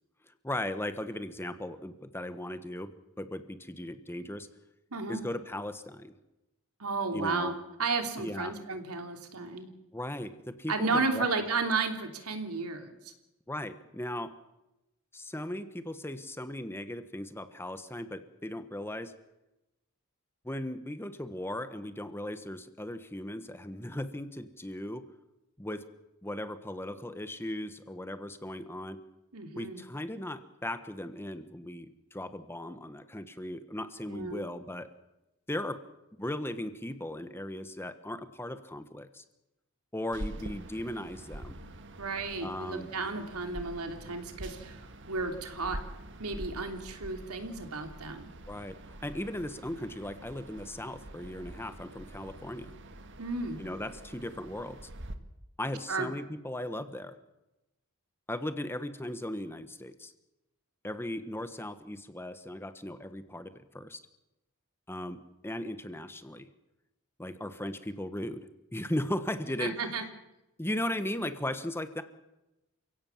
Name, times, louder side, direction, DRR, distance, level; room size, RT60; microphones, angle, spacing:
voice 1, 0.4-2.9 3.2-4.5 5.1-6.1 7.1-7.5 8.2-8.5 9.9-11.3 13.5-14.3 15.1-19.1 20.4-25.0 25.6-25.8 26.2-29.0 29.6-34.9 35.5-35.8 36.2-39.2 39.9-41.6 42.4-42.9 48.5-48.8 49.0-52.7 53.6-54.8 55.6-57.2 58.3-60.1 60.8-64.0 64.9-66.5 67.2-69.8 70.6-72.0, left 1 dB, 10° left, 10 dB, 1.3 m, -37 dB
voice 2, 4.9-5.2 6.8-9.7 10.7-13.1 29.3-29.8 34.1-34.4 42.0-45.8 46.2-48.3 53.2-53.6 55.9-56.1 69.6-70.0, right 3 dB, 90° right, 5 dB, 3.2 m, -33 dB
sound 1, 40.1-55.2, right 1 dB, 55° right, 1.8 m, -45 dB
29.0 x 17.0 x 7.3 m, 0.96 s
head